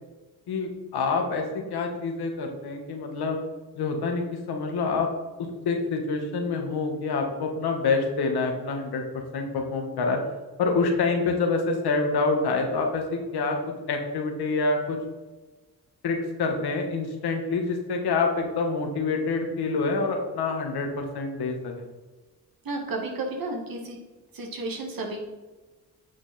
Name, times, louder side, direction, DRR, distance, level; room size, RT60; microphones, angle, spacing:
voice 1, 0.5-3.4 3.8-5.1 5.6-9.0 9.3-10.2 10.6-13.6 13.9-15.0 16.0-21.8, left 4 dB, 85° left, 3 dB, 1.7 m, -27 dB
voice 2, 22.6-24.0 24.3-25.2, right 2 dB, 65° right, 2 dB, 2.1 m, -32 dB
8.6 x 6.2 x 4.3 m, 1.2 s
cardioid pair, 70°, 37 cm